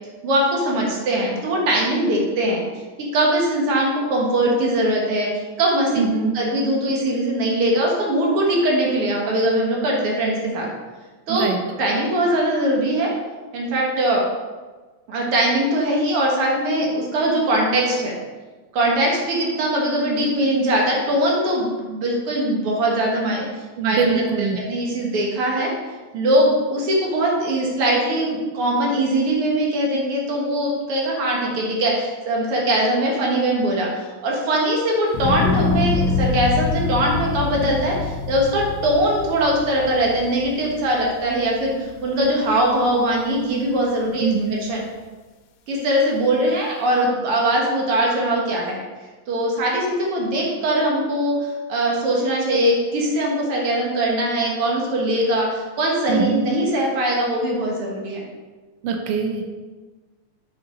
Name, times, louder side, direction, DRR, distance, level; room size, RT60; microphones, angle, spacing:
voice 1, 0.2-2.6 3.0-5.3 5.6-6.0 6.3-10.7 11.3-13.1 13.5-14.2 15.1-18.1 18.7-23.5 23.8-25.7 26.1-33.9 34.2-44.8 45.7-48.8 49.3-51.4 51.7-58.2, right 1 dB, 55° right, -2 dB, 2.0 m, -21 dB
voice 2, 6.0-6.4 11.3-11.6 23.8-24.6 44.2-44.6 56.1-56.4 58.8-59.4, right 6 dB, 85° right, 4 dB, 1.3 m, -22 dB
sound 1, 35.1-41.5 41.9-42.5, left 4 dB, 85° left, 2.0 m, -25 dB
6.4 x 5.9 x 3.8 m, 1.3 s
omnidirectional pair, 3.4 m